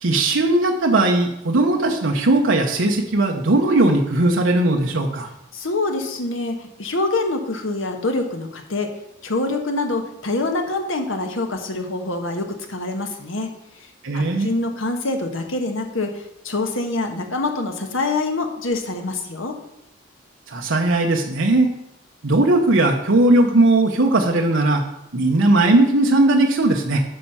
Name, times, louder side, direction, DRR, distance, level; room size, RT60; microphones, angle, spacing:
voice 1, 0.0-5.3 14.0-14.5 20.5-21.7 22.2-24.8 25.1-27.0, right 2 dB, 75° right, 1 dB, 0.9 m, -18 dB
voice 2, 5.5-8.9 9.2-13.5 14.1-19.6, left 2 dB, 80° left, 4 dB, 1.3 m, -25 dB
9.1 x 5.5 x 5.6 m, 0.82 s
head